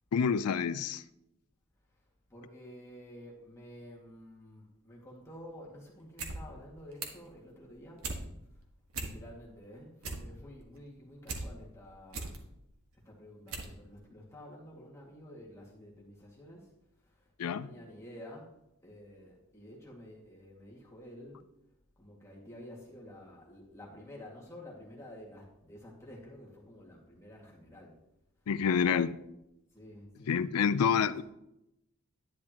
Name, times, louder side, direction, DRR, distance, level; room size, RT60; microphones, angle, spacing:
voice 1, 0.1-1.0 17.4-17.7 28.5-29.1 30.3-31.2, left 6 dB, 90° left, 0.4 m, -28 dB
voice 2, 2.3-8.2 8.9-12.4 13.0-16.8 17.1-21.5 22.0-28.1 28.8-29.2 29.7-31.2, left 1 dB, 15° left, 2.0 m, -51 dB
sound 1, 6.0-6.4 6.7-7.3 7.7-8.2 8.6-8.7 8.9-9.5 9.8-11.4 11.8-12.4 12.9-13.0 13.5-13.7 14.0-14.1, right 3 dB, 75° right, 1.5 m, -39 dB
10.5 x 10.0 x 2.9 m
head